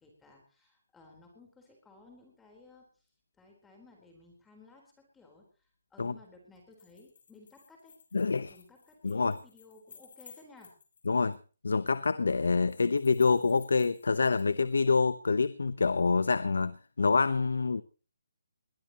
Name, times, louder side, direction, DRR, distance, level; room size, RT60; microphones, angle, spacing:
voice 1, 0.0-3.1 3.4-8.0 8.4-10.7, left 3 dB, 5° left, 1 dB, 4.1 m, -57 dB
sound 1, 6.6-11.0 11.3-11.4 12.7-14.6, left 6 dB, 55° left, 4.8 m, -57 dB
voice 2, 8.1-8.5 9.0-9.3 11.1-11.4 11.6-17.8, left 4 dB, 80° left, 15 dB, 1.0 m, -26 dB
21.5 x 19.0 x 3.0 m, 0.38 s
hypercardioid pair, 160°, 0 cm